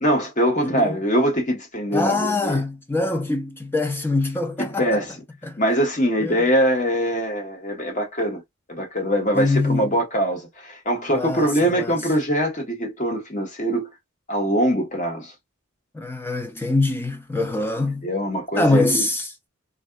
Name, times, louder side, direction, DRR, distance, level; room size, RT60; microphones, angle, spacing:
voice 1, 0.0-2.6 4.6-5.1 5.6-8.4 8.7-13.9 14.3-15.3 18.0-19.0, equal, 35° left, 1.2 m, -23 dB
voice 2, 0.6-1.0 1.9-5.0 5.4-5.6 6.2-6.5 9.3-9.9 11.1-11.9 15.9-18.1 18.6-19.3, left 2 dB, 10° left, 0.5 m, -24 dB
3.5 x 2.6 x 2.2 m
head